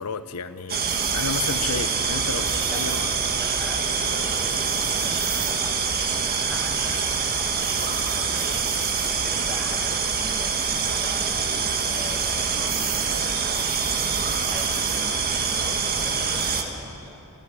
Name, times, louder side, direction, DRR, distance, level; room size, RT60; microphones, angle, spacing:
voice 1, 0.0-3.1, left 5 dB, 80° left, 11 dB, 0.7 m, -32 dB
sound 1, 0.7-16.6, right 5 dB, 45° right, 1.6 m, -25 dB
voice 2, 2.3-8.6 9.0-17.2, left 1 dB, ahead, -1 dB, 2.1 m, -42 dB
26.5 x 12.5 x 8.3 m, 3.0 s
head